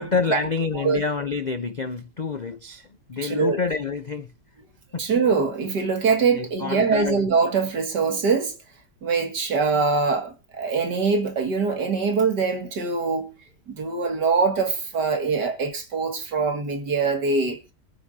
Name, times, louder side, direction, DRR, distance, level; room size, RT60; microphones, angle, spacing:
voice 1, 0.0-4.3 4.9-5.1 6.3-7.3, left 4 dB, 55° left, 0.4 m, -28 dB
voice 2, 3.2-3.6 5.0-8.5 9.0-13.3 13.7-17.6, right 4 dB, 80° right, 2.9 m, -23 dB
23.5 x 9.3 x 2.8 m
omnidirectional pair, 1.8 m